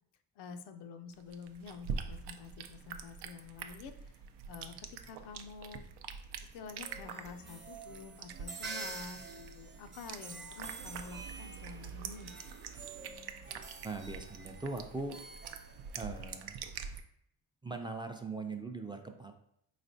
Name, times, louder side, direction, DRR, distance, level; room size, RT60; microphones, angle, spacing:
voice 1, 0.4-4.1 4.5-5.9 6.5-9.3 9.5-12.3, left 5 dB, 80° left, 8 dB, 0.5 m, -48 dB
sound 1, 1.1-17.0, right 6 dB, 75° right, 0.5 m, -45 dB
sound 2, 6.8-16.3, right 3 dB, 25° right, 0.8 m, -48 dB
voice 2, 13.8-15.2 15.9-16.6 17.6-19.3, right 3 dB, 10° right, 4 dB, 0.4 m, -40 dB
4.2 x 3.2 x 2.7 m, 0.72 s
cardioid pair, 75°, 40 cm